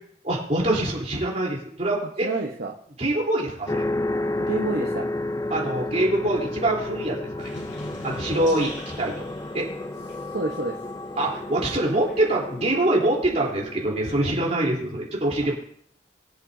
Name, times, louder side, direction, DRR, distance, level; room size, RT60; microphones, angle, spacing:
voice 1, 0.2-2.3 3.0-3.9 5.5-7.5 8.0-8.7 9.0-9.3 9.5-9.7 11.2-15.5, right 1 dB, 40° right, -3 dB, 3.4 m, -24 dB
voice 2, 2.2-2.8 4.4-5.1 8.5-8.7 10.3-10.8 15.4-15.5, right 2 dB, 60° right, -1 dB, 1.0 m, -29 dB
sound 1, 3.7-14.4, left 2 dB, 20° left, 0.4 m, -31 dB
sound 2, 7.4-12.7 13.1-14.8, left 1 dB, 85° left, 4.9 m, -46 dB
22.5 x 7.7 x 2.7 m, 0.63 s
head